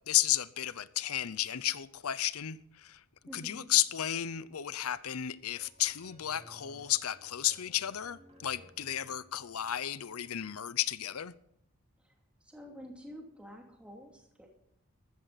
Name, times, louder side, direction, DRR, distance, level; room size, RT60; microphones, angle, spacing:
voice 1, 0.1-3.0 3.3-11.3, left 12 dB, 85° left, 0.7 m, -33 dB
voice 2, 3.3-3.7 12.0-12.1 12.4-14.5, equal, 5° right, 2.6 m, -49 dB
sound 1, 5.5-9.9, equal, 30° right, 3.2 m, -58 dB
15.0 x 14.0 x 4.1 m
head